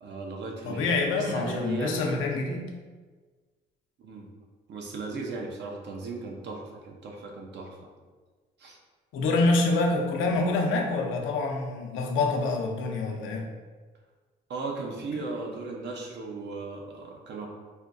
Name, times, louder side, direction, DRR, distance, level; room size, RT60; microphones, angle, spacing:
voice 1, 0.0-0.9 1.1-2.0 4.0-4.3 4.7-7.9 8.6-8.8 14.5-17.5, right 3 dB, 60° right, 1 dB, 0.7 m, -36 dB
voice 2, 0.6-2.7 9.1-13.5, left 3 dB, 85° left, 1 dB, 0.5 m, -26 dB
4.2 x 2.3 x 2.5 m, 1.4 s
cardioid pair, 90°, 20 cm